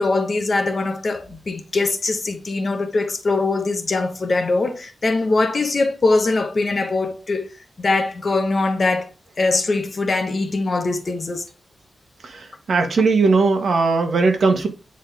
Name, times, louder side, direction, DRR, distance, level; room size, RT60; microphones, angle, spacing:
voice 1, 0.0-7.5 7.8-9.1 9.4-11.5, left 3 dB, 35° left, 1.1 m, -22 dB
voice 2, 12.2-14.7, right 4 dB, 55° right, 1.3 m, -18 dB
9.1 x 3.9 x 3.4 m
wide cardioid pair, 155°, 0 cm